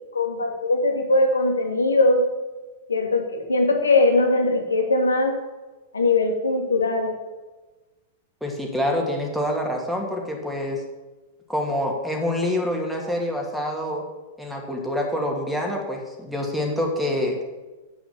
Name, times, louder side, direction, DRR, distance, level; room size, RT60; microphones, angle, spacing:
voice 1, 0.1-2.2 2.9-5.4 5.9-7.1, left 2 dB, 85° left, 3 dB, 1.9 m, -20 dB
voice 2, 8.4-10.8 11.5-14.0 14.4-17.4, left 1 dB, ahead, 0 dB, 2.4 m, -26 dB
8.8 x 6.2 x 7.2 m, 1.2 s
hypercardioid pair, 105°, 0 cm